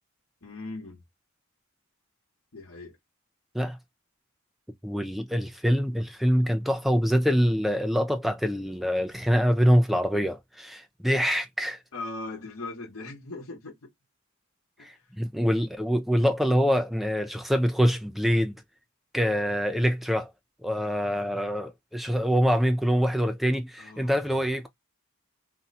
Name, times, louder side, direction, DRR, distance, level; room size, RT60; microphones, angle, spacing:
voice 1, 0.4-1.0 2.5-3.0 11.9-13.9 14.8-15.0 23.8-24.5, left 2 dB, 65° left, 1.1 m, -39 dB
voice 2, 4.8-11.8 14.8-18.5 19.1-20.3 20.6-24.7, equal, ahead, 0.3 m, -25 dB
2.7 x 2.2 x 3.9 m
head